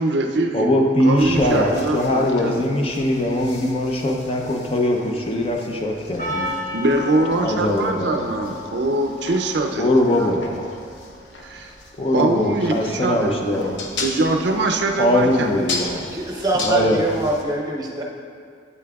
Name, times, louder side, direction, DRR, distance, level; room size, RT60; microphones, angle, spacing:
voice 1, 0.0-0.8 1.0-2.7 6.7-10.3 11.4-11.7 12.1-15.5, right 2 dB, 60° right, 3 dB, 0.5 m, -23 dB
voice 2, 0.5-6.5 7.4-8.3 9.8-10.7 12.0-13.9 15.0-16.1 16.6-17.0, left 1 dB, 30° left, 1 dB, 0.5 m, -21 dB
sound 1, 1.2-17.4, left 3 dB, 70° left, 0.8 m, -37 dB
Percussion, 6.2-11.2, left 2 dB, 45° left, 1.6 m, -33 dB
voice 3, 16.1-18.0, right 2 dB, 20° right, -2 dB, 0.8 m, -24 dB
8.4 x 8.3 x 2.3 m, 2.2 s
head